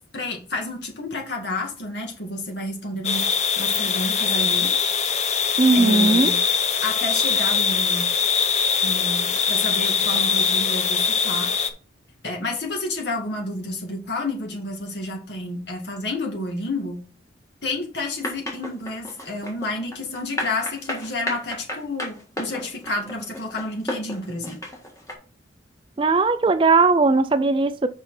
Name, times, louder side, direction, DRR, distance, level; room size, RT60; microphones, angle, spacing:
voice 1, 0.1-3.2 3.6-4.7 5.7-6.4 6.8-8.1 8.8-11.5 12.2-17.0 17.6-24.6, left 2 dB, 65° left, 2.2 m, -30 dB
sound 1, 3.0-11.7, left 6 dB, 35° left, 0.7 m, -22 dB
voice 2, 5.6-6.3 26.0-27.9, right 3 dB, 25° right, 0.4 m, -18 dB
sound 2, 18.2-25.1, left 1 dB, 15° left, 1.6 m, -32 dB
5.9 x 5.4 x 4.2 m
head